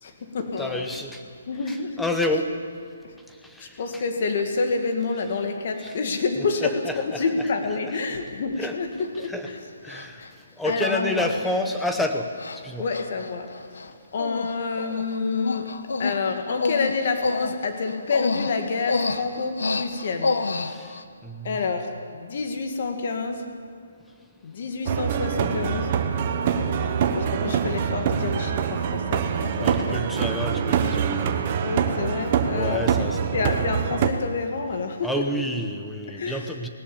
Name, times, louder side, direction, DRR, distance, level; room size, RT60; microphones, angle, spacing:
voice 1, 0.0-0.8 1.5-2.0 3.6-9.6 10.2-10.3 10.6-11.3 12.8-13.5 14.1-15.7 16.0-20.4 21.4-23.5 24.4-26.0 27.1-30.1 30.9-31.2 31.6-32.9 33.3-35.2 36.1-36.5, left 4 dB, 40° left, 5 dB, 2.2 m, -28 dB
voice 2, 0.6-1.2 1.7-2.5 3.4-3.8 5.8-5.9 6.9-7.2 8.6-8.7 9.3-9.5 9.8-10.2 10.6-12.3 12.5-12.8 20.7-20.9 21.2-21.6 29.6-31.3 32.5-33.4 35.0-36.7, left 1 dB, 5° left, 5 dB, 0.9 m, -29 dB
Human voice, 9.0-9.1 9.9-10.3 10.8-10.9 11.3-11.5 11.8-12.0 12.4-12.6 12.9-13.9 14.2-14.5 14.8-21.0, left 3 dB, 85° left, 1.2 m, -28 dB
sound 1, 24.9-34.1, right 7 dB, 25° right, 1.2 m, -25 dB
19.5 x 18.5 x 7.2 m, 2.2 s
hypercardioid pair, 170°, 0 cm